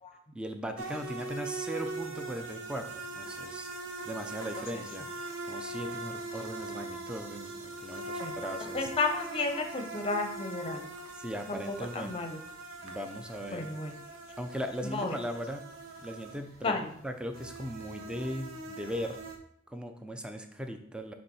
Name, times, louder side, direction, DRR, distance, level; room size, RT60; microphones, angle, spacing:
voice 1, 0.3-3.7 4.0-8.8 11.2-12.1 12.8-13.7 14.4-15.7 16.0-19.2 19.7-21.1, equal, 5° right, 5 dB, 0.5 m, -38 dB
sound 1, 0.8-19.4, right 2 dB, 80° right, 1.1 m, -41 dB
voice 2, 8.7-10.9 11.5-12.4 13.5-14.0 14.8-15.2 16.6-16.8, left 3 dB, 25° left, 5 dB, 0.7 m, -32 dB
7.1 x 3.2 x 5.4 m, 0.69 s
head